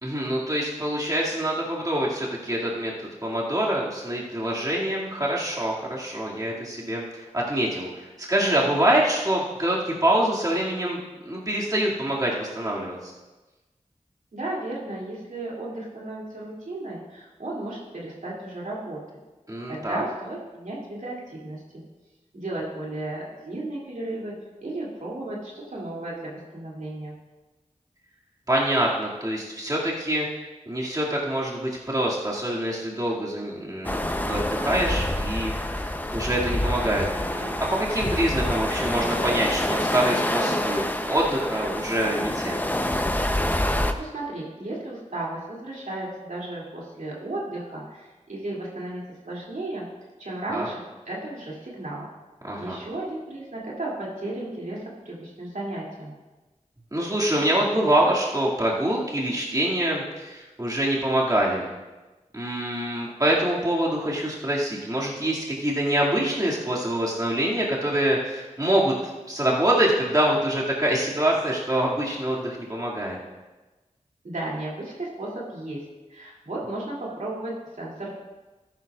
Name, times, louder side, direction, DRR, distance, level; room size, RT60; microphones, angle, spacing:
voice 1, 0.0-11.0 11.3-13.1 19.5-20.0 28.5-30.3 30.7-42.6 50.5-50.7 52.4-52.8 56.9-61.7 62.3-69.0 69.3-73.2, right 1 dB, 30° right, -5 dB, 2.3 m, -25 dB
voice 2, 14.3-19.0 19.7-21.8 22.3-24.3 24.6-27.2 43.7-49.8 50.2-52.1 52.6-56.2 74.2-75.8 76.1-78.1, right 2 dB, 75° right, -5 dB, 2.8 m, -34 dB
sound 1, 33.8-43.9, left 1 dB, 15° left, 0.7 m, -27 dB
14.0 x 10.5 x 2.5 m, 1.2 s
wide cardioid pair, 50°, 13 cm